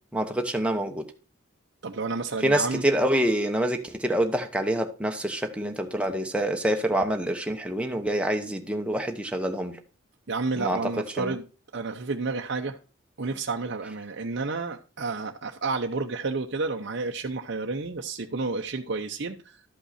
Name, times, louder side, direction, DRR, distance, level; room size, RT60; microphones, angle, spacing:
voice 1, 0.1-1.0 2.4-9.8 10.6-10.8 11.2-11.4, right 1 dB, 5° right, 1.0 m, -26 dB
voice 2, 1.8-2.8 10.3-11.4 11.7-12.8 13.2-19.6, right 3 dB, 60° right, 0.7 m, -30 dB
12.5 x 5.5 x 4.2 m
head